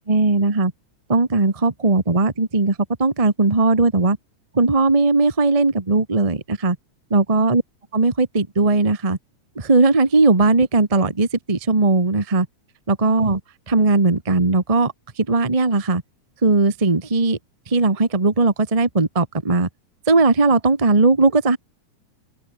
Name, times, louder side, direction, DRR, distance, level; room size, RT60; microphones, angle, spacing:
voice 1, 0.1-0.7 1.1-2.7 3.0-4.2 4.5-6.8 7.1-7.6 7.9-9.2 9.5-12.5 12.9-13.4 13.7-14.9 15.3-16.0 16.4-17.4 17.7-19.7 20.1-21.6, right 3 dB, 15° right, 1.4 m, -18 dB
omnidirectional pair, 3.5 m